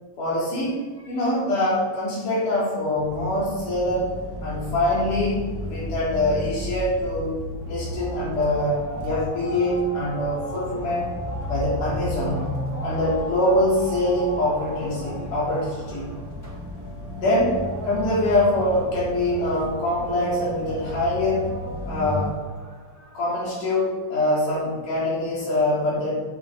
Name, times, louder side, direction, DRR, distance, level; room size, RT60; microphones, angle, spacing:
voice 1, 0.2-4.1 4.4-7.3 7.7-11.1 11.5-12.6 12.8-16.1 17.2-17.6 17.8-21.5 21.9-22.4 23.1-26.2, left 1 dB, 85° left, -6 dB, 4.8 m, -24 dB
sound 1, 3.0-22.3, equal, 10° right, 0.7 m, -34 dB
sound 2, 7.6-24.0, equal, 25° left, 0.4 m, -38 dB
11.0 x 7.7 x 3.9 m, 1.4 s
omnidirectional pair, 3.6 m